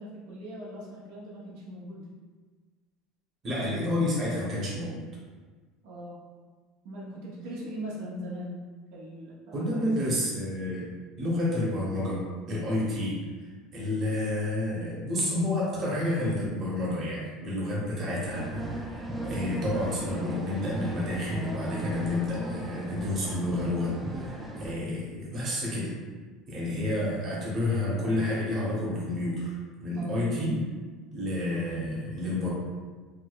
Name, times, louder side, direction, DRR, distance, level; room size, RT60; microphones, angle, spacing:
voice 1, 0.0-2.1 5.8-6.2 6.8-10.1 29.9-30.3, equal, 80° right, -5 dB, 0.8 m, -40 dB
voice 2, 3.4-5.1 9.5-10.9 11.2-13.2 13.7-25.9 26.5-29.5 29.8-30.6 31.1-32.5, left 1 dB, 35° right, -5 dB, 0.9 m, -30 dB
sound 1, 18.3-24.7, right 1 dB, 10° right, 0.3 m, -36 dB
4.7 x 2.1 x 2.3 m, 1.4 s
cardioid pair, 150°, 0 cm